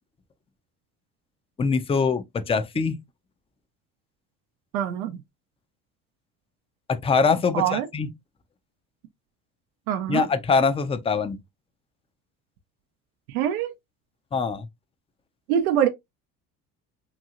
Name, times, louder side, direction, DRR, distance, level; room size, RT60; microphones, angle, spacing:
voice 1, 1.6-3.0 6.9-8.1 10.1-11.4 14.3-14.7, left 5 dB, 15° left, 0.4 m, -23 dB
voice 2, 4.7-5.2 7.5-7.9 9.9-10.3 13.3-13.7 15.5-15.9, right 10 dB, 90° right, 0.6 m, -24 dB
3.0 x 2.6 x 2.4 m
hypercardioid pair, 70°, 42 cm